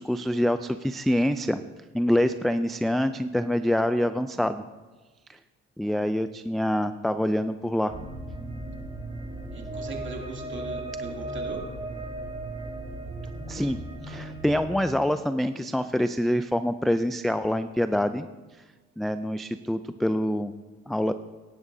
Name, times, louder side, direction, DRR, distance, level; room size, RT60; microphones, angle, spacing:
voice 1, 0.0-1.6 1.9-4.6 5.8-7.9 13.5-13.8 14.1-18.3 19.0-20.5 20.9-21.1, equal, ahead, 9 dB, 0.3 m, -25 dB
sound 1, 7.9-14.7, right 2 dB, 20° right, 3.5 m, -36 dB
voice 2, 9.5-11.6, right 3 dB, 40° right, -1 dB, 2.6 m, -39 dB
16.5 x 11.0 x 2.7 m, 1.3 s
cardioid pair, 90°, 30 cm